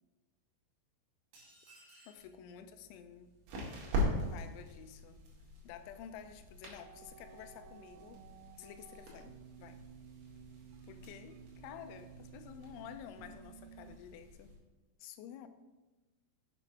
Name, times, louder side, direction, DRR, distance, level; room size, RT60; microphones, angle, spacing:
sound 1, 1.3-2.3, right 1 dB, 55° right, 3.8 m, -59 dB
voice 1, 2.1-5.2 5.6-8.3 8.6-9.3 9.6-9.8 10.9-14.6 15.0-15.5, left 9 dB, 85° left, 9 dB, 3.0 m, -51 dB
sound 2, 2.2-14.6, left 1 dB, 70° right, 4.1 m, -43 dB
sound 3, 6.8-14.2, right 9 dB, 85° right, 3.0 m, -55 dB
7.6 x 7.5 x 4.8 m, 1.1 s
omnidirectional pair, 5.5 m